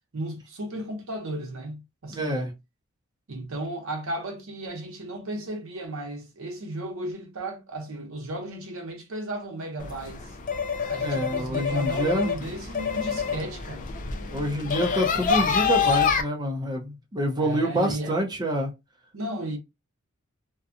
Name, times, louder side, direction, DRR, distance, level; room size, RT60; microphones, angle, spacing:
voice 1, 0.1-2.5 3.3-10.4 10.9-13.9 17.4-18.2 19.1-19.6, right 1 dB, 65° right, 0.8 m, -35 dB
voice 2, 2.1-2.5 11.0-12.3 14.3-18.7, right 1 dB, 20° right, 0.6 m, -27 dB
sound 1, 9.8-16.2, left 6 dB, 35° left, 0.4 m, -27 dB
2.6 x 2.2 x 2.5 m
head